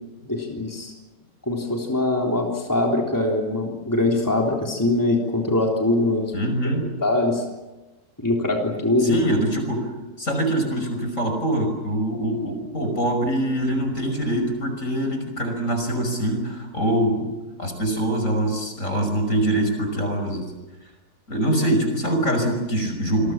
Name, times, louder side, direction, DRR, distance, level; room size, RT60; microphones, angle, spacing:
voice 1, 0.3-0.9 1.4-6.3 6.6-6.7 7.0-7.4 8.2-9.1, left 2 dB, 10° left, 0 dB, 3.5 m, -22 dB
voice 2, 6.3-6.9 9.0-9.9 10.2-17.3 17.6-20.5 21.3-23.3, right 1 dB, 55° left, 5 dB, 6.2 m, -24 dB
28.0 x 21.5 x 7.4 m, 1.1 s
omnidirectional pair, 1.6 m